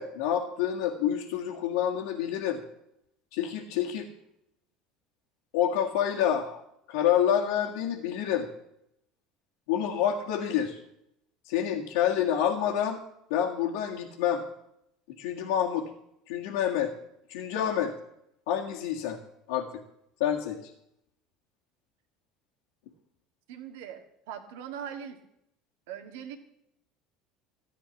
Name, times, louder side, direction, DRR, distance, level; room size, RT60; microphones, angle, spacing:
voice 1, 0.0-2.6 3.3-4.1 5.5-6.6 6.9-8.5 9.7-10.8 11.5-13.0 13.3-14.4 15.2-15.9 16.3-16.9 17.3-17.9 18.5-19.2 19.5-19.7 20.2-20.6, left 9 dB, 70° left, -2 dB, 1.7 m, -27 dB
voice 2, 23.5-25.2 25.9-26.4, right 8 dB, 70° right, 7 dB, 1.7 m, -41 dB
15.0 x 9.3 x 7.2 m, 0.78 s
hypercardioid pair, 70°, 0 cm